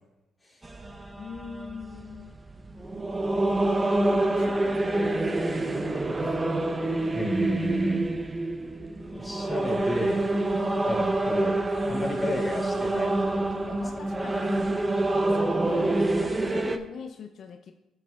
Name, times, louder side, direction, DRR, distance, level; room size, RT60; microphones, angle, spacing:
sound 1, 0.6-16.8, right 2 dB, 20° right, 0.6 m, -27 dB
voice 1, 1.2-2.4 3.7-6.5 13.8-14.5 14.9-17.7, left 6 dB, 65° left, 5 dB, 0.5 m, -42 dB
voice 2, 7.1-8.1 9.1-10.2 10.9-11.6 11.9-13.9, equal, 10° left, -3 dB, 3.2 m, -31 dB
13.5 x 6.6 x 2.4 m, 0.93 s
cardioid pair, 90°, 0 cm